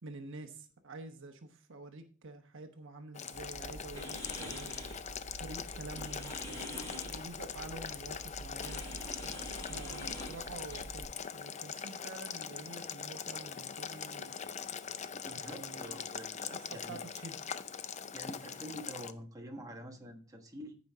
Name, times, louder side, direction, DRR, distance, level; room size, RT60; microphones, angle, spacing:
voice 1, 0.0-4.8 5.4-8.8 9.7-11.1 11.3-14.3 15.3-16.1 16.5-17.4, right 2 dB, 65° right, 6 dB, 1.0 m, -48 dB
Boiling, 3.1-19.1, left 7 dB, 35° left, 0.5 m, -42 dB
sound 1, 3.3-11.0, right 1 dB, 15° left, 4.1 m, -46 dB
voice 2, 15.1-17.0 18.1-20.8, equal, 15° right, 2 dB, 1.4 m, -47 dB
14.5 x 5.3 x 3.6 m, 0.41 s
head